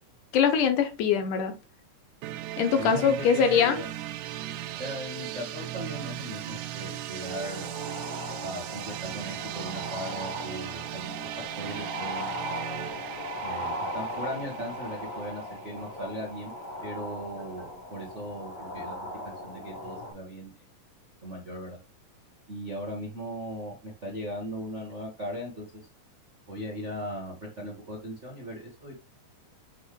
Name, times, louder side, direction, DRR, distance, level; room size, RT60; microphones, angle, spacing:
voice 1, 0.3-1.5 2.6-3.8, left 7 dB, 75° left, 2.3 m, -23 dB
sound 1, 2.2-16.0, right 13 dB, 80° right, 2.0 m, -38 dB
voice 2, 2.8-3.9 4.8-7.7 8.4-11.1 11.6-12.4 13.4-16.5 16.8-18.9 19.2-20.5 21.2-21.8 22.5-25.6 26.5-28.9, equal, 40° right, 1.0 m, -38 dB
sound 2, 7.2-20.1, equal, 55° left, 3.7 m, -38 dB
7.4 x 4.0 x 3.2 m
omnidirectional pair, 3.8 m